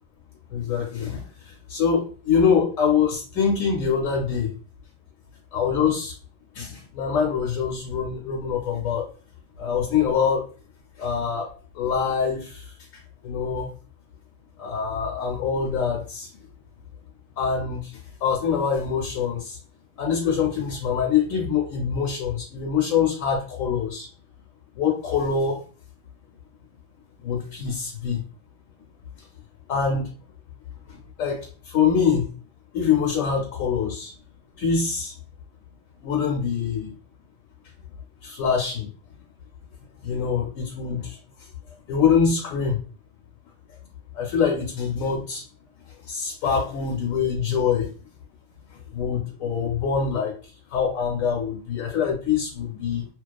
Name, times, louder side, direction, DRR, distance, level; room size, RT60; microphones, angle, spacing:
voice 1, 0.5-4.5 5.5-6.1 6.5-9.1 9.6-10.5 11.0-11.5 11.7-13.7 14.6-16.3 17.4-19.6 20.0-24.1 24.8-25.6 27.2-28.2 29.7-30.1 30.9-32.3 32.7-34.1 34.6-35.1 36.0-36.9 38.2-38.9 40.0-41.2 41.9-42.8 44.1-45.4 45.9-47.9 48.7-50.3 50.7-53.1, left 6 dB, 80° left, -1 dB, 1.0 m, -24 dB
2.3 x 2.3 x 2.3 m, 0.38 s
omnidirectional pair, 1.3 m